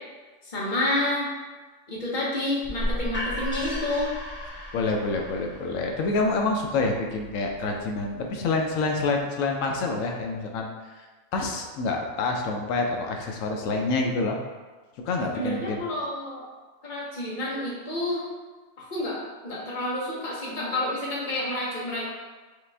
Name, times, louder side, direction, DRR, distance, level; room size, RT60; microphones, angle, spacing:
voice 1, 0.5-1.3 1.9-4.1 15.3-16.5 16.8-18.2 18.8-19.2 19.4-22.1, left 1 dB, 35° left, -6 dB, 1.2 m, -29 dB
sound 1, 2.6-8.4, equal, 10° left, 1.0 m, -35 dB
voice 2, 4.7-10.7 11.0-11.1 11.3-14.4 15.0-15.8, left 3 dB, 75° left, 2 dB, 0.9 m, -27 dB
5.0 x 2.5 x 3.3 m, 1.3 s
omnidirectional pair, 1.4 m